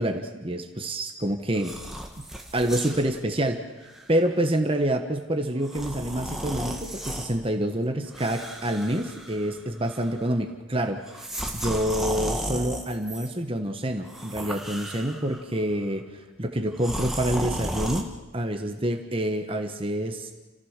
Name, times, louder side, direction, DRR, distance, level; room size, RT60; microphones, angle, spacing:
voice 1, 0.0-1.7 2.5-3.6 4.1-20.3, right 1 dB, 25° right, 5 dB, 1.3 m, -27 dB
sound 1, 1.6-3.1 3.8-4.0 5.6-7.4 8.1-9.6 9.8-10.3 11.1-13.3 14.0-15.4 16.8-18.0, equal, ahead, 1.6 m, -34 dB
30.0 x 15.0 x 6.7 m, 1.2 s
head